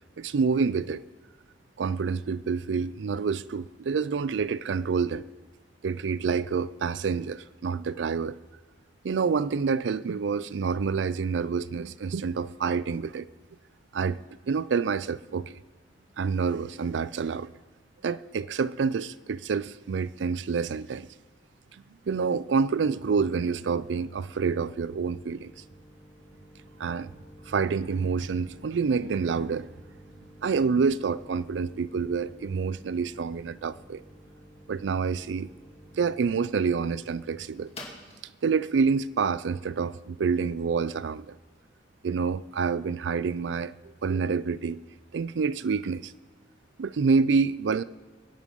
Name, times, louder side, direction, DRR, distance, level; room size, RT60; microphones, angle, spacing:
voice 1, 0.2-1.0 1.8-5.2 5.8-8.3 9.0-13.3 13.9-14.2 14.5-15.6 16.2-17.5 18.0-21.1 22.1-25.5 26.8-27.1 27.5-29.7 30.4-34.0 34.7-35.5 36.0-37.7 38.4-41.4 42.0-43.7 44.0-44.8 45.1-46.1 46.8-47.8, right 5 dB, 85° right, 0.4 m, -27 dB
sound 1, 22.8-40.3, left 1 dB, 35° left, 2.4 m, -52 dB
23.0 x 8.3 x 5.4 m
head